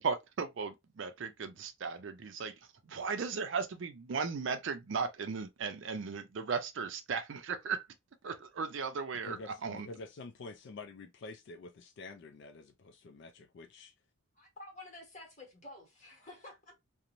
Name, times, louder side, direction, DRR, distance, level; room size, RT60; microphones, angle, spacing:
voice 1, 0.0-2.5 2.9-7.8 8.2-9.4 9.6-9.9, right 5 dB, 60° right, 0.4 m, -36 dB
voice 2, 9.1-13.9, left 3 dB, 55° left, 0.3 m, -48 dB
voice 3, 14.3-16.8, left 2 dB, 35° left, 1.2 m, -51 dB
2.5 x 2.0 x 2.9 m
head